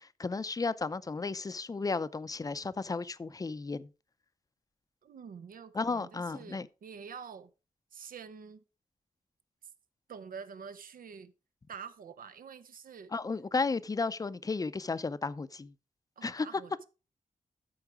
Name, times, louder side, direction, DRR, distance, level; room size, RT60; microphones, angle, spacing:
voice 1, 0.0-3.9 5.7-6.7 13.1-15.7 16.2-16.5, left 4 dB, 25° left, 0.6 m, -34 dB
voice 2, 5.0-7.5 7.9-8.6 10.1-11.3 11.7-13.1 16.2-16.8, right 6 dB, 85° right, 1.0 m, -47 dB
13.0 x 4.8 x 4.9 m
wide cardioid pair, 135°, 14 cm